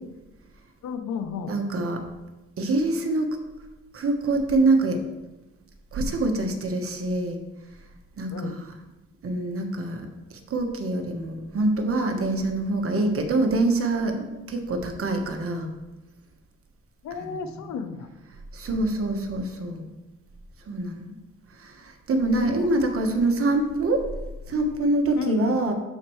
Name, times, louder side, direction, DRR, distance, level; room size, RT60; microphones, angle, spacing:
voice 1, 0.8-1.6 8.3-8.6 17.0-18.1 22.3-23.3 25.2-25.6, left 5 dB, 65° left, 9 dB, 0.8 m, -32 dB
voice 2, 1.5-2.0 2.6-3.4 3.9-5.0 5.9-7.4 8.2-8.3 9.2-10.0 10.5-15.7 18.5-19.9 20.7-21.1 21.6-21.7 22.1-24.1 24.5-25.7, right 2 dB, 45° right, 4 dB, 1.3 m, -25 dB
13.0 x 4.4 x 3.2 m, 1.0 s
cardioid pair, 90°, 30 cm